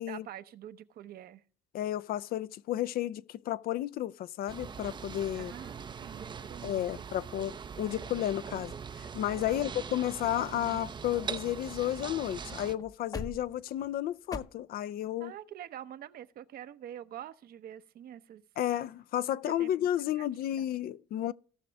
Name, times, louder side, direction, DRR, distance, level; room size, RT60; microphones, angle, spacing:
voice 1, 0.1-1.4 5.3-6.8 9.5-9.7 15.2-18.4 19.5-19.9 20.2-20.3 20.6-20.7, right 11 dB, 65° right, 0.8 m, -46 dB
voice 2, 1.7-5.5 6.6-15.3 18.6-21.3, left 12 dB, 60° left, 0.5 m, -32 dB
sound 1, 4.5-12.8, right 6 dB, 25° right, 0.5 m, -42 dB
sound 2, 8.1-9.0 9.5-9.6 9.8-10.1 10.4-12.0 12.3-12.4 12.7-14.4, left 3 dB, 20° left, 0.7 m, -45 dB
17.5 x 6.1 x 3.4 m
cardioid pair, 110°, 17 cm